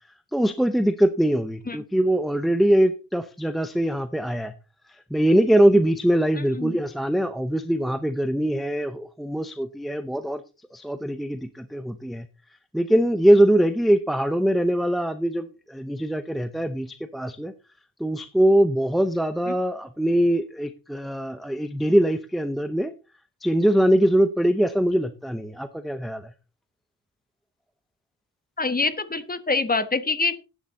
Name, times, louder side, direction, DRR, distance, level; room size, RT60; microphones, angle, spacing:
voice 1, 0.3-4.5 4.9-10.4 10.7-12.3 12.7-17.5 18.0-22.9 23.4-26.3, right 1 dB, ahead, 10 dB, 0.6 m, -22 dB
voice 2, 28.6-30.4, left 3 dB, 20° left, 12 dB, 1.2 m, -25 dB
11.5 x 9.2 x 4.1 m, 0.31 s
wide cardioid pair, 135°, 40 cm